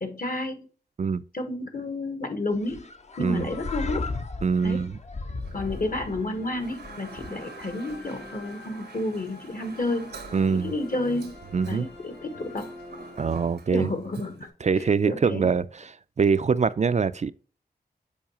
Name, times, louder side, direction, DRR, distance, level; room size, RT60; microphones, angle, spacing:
voice 1, 0.0-0.7 1.3-2.9 3.2-4.1 4.6-4.8 5.5-10.1 10.5-11.4 11.6-12.7 13.7-15.5, left 2 dB, 55° left, 1.3 m, -31 dB
sound 1, 2.6-7.7, left 3 dB, 40° left, 0.6 m, -36 dB
voice 2, 4.4-5.0 10.3-10.7 11.5-11.9 13.2-13.9 14.6-15.9 16.2-17.3, right 5 dB, 45° right, 0.4 m, -24 dB
Toilet flush, 5.4-14.5, right 4 dB, 85° right, 0.9 m, -48 dB
sound 2, 5.5-13.9, left 2 dB, 90° left, 1.7 m, -46 dB
7.1 x 4.7 x 2.9 m
wide cardioid pair, 65°, 17 cm